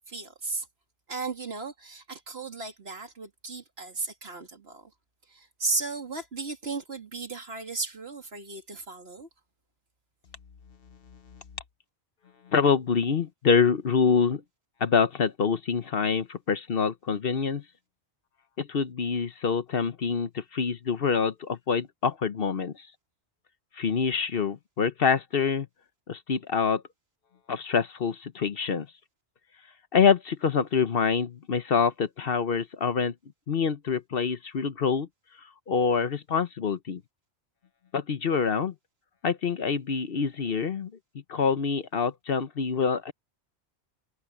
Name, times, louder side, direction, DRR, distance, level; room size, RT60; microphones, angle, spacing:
voice 1, 0.1-0.7 1.1-4.9 5.3-9.3, right 3 dB, 60° right, 2.7 m, -35 dB
voice 2, 12.5-14.4 14.8-17.6 18.6-22.9 23.8-25.7 26.1-26.8 27.5-28.9 29.9-33.1 33.5-35.1 35.7-37.0 37.9-38.7 39.2-40.9 41.3-43.1, left 6 dB, 55° left, 1.0 m, -26 dB
omnidirectional pair, 1.2 m